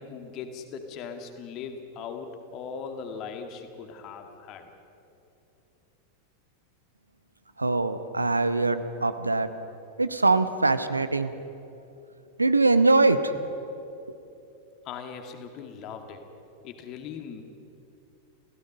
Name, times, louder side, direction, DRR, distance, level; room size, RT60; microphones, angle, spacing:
voice 1, 0.0-4.7 14.8-16.2 16.6-17.4, left 6 dB, 40° left, 5 dB, 2.3 m, -39 dB
voice 2, 7.6-9.5 10.0-11.3 12.4-13.2, right 3 dB, 80° right, 11 dB, 1.0 m, -22 dB
29.5 x 16.5 x 5.5 m, 2.9 s
figure-of-eight pair, 90°, 0 cm